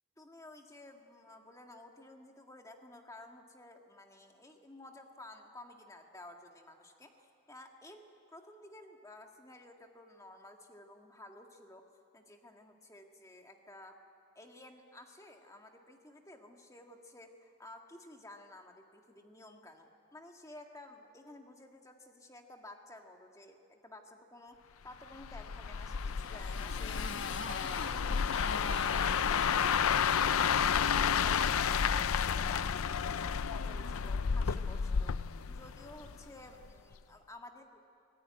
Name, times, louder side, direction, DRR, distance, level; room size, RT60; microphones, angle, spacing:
voice 1, 0.2-11.8 12.1-13.9 14.3-27.1 31.1-35.1 35.5-37.8, left 1 dB, 15° left, 3 dB, 1.7 m, -53 dB
sound 1, 25.2-36.3 36.6-36.9, left 7 dB, 75° left, 0.5 m, -31 dB
Motorcycle, 25.8-32.2, left 5 dB, 55° left, 1.1 m, -42 dB
24.5 x 17.0 x 9.5 m, 2.7 s
head